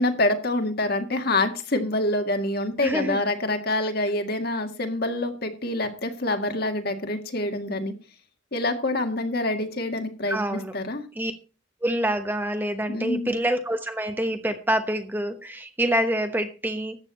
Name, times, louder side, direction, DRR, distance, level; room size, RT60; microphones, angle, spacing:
voice 1, 0.0-7.9 8.5-11.0 12.9-13.3, left 2 dB, 50° left, 5 dB, 1.9 m, -26 dB
voice 2, 2.8-3.2 10.3-10.7 11.2-11.3 11.8-17.0, right 1 dB, 10° right, 7 dB, 1.0 m, -26 dB
14.0 x 9.0 x 4.2 m, 0.33 s
head